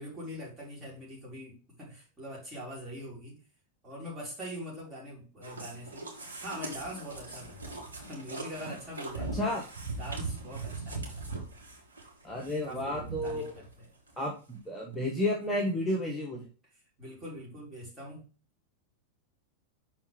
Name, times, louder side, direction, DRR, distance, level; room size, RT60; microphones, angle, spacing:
voice 1, 0.0-3.4 3.8-6.1 6.4-9.6 10.0-11.3 12.6-13.9 17.0-18.2, equal, 20° right, -4 dB, 4.2 m, -43 dB
sound 1, 5.4-13.7 14.1-14.2 14.7-14.8 14.9-15.0, right 3 dB, 75° right, 2.2 m, -40 dB
voice 2, 12.2-13.5 14.2-16.5, left 1 dB, 10° left, -2 dB, 1.4 m, -31 dB
6.1 x 4.4 x 5.2 m, 0.36 s
figure-of-eight pair, 90°, 0 cm